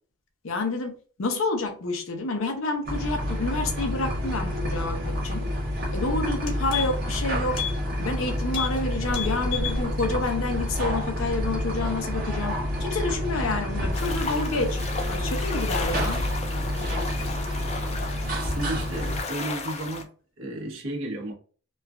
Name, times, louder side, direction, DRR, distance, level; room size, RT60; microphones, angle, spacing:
voice 1, 0.4-5.5 5.9-7.6 8.0-14.8 15.1-16.2, left 3 dB, 85° left, 0.6 m, -29 dB
sound 1, 2.8-19.2, equal, 45° right, 0.8 m, -28 dB
sound 2, 5.8-6.0 6.3-7.1 7.5-7.8 8.1-8.2 8.5-8.8 9.1-9.8 10.2-10.3, left 10 dB, 70° left, 1.1 m, -32 dB
sound 3, 13.9-20.0, left 4 dB, 30° left, 0.4 m, -35 dB
voice 2, 18.3-21.3, right 1 dB, 80° right, 1.0 m, -34 dB
3.1 x 2.4 x 2.3 m
head